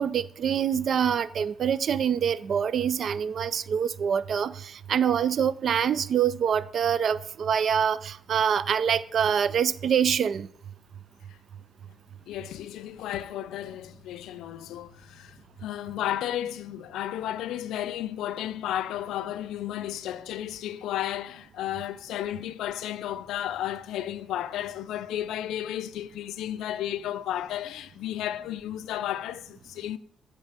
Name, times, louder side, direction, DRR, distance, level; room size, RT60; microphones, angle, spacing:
voice 1, 0.0-10.5, right 8 dB, 55° right, 0.4 m, -25 dB
voice 2, 12.3-30.0, left 12 dB, 85° left, 0.4 m, -33 dB
8.8 x 3.3 x 6.7 m
cardioid pair, 90°, 0 cm